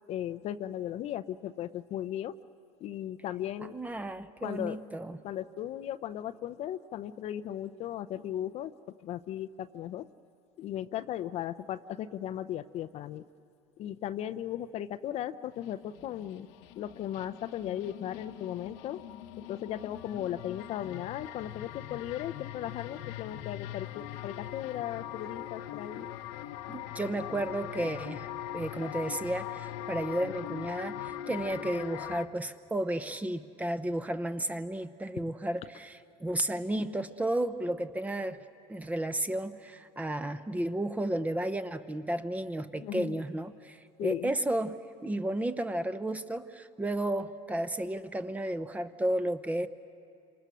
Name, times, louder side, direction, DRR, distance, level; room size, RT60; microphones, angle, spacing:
voice 1, 0.1-2.3 2.8-3.7 4.4-4.8 5.2-8.7 9.0-10.1 10.6-13.2 13.8-16.5 16.8-19.0 19.5-26.1 42.8-43.2 44.0-44.3, left 11 dB, 45° left, 12 dB, 0.6 m, -36 dB
voice 2, 3.6-5.2 26.7-28.3 28.5-38.4 38.7-49.7, right 1 dB, 10° right, 11 dB, 0.9 m, -33 dB
sound 1, 15.6-32.3, left 12 dB, 75° left, 1.0 m, -41 dB
28.5 x 27.0 x 6.3 m, 2.5 s
supercardioid pair, 115°, 14 cm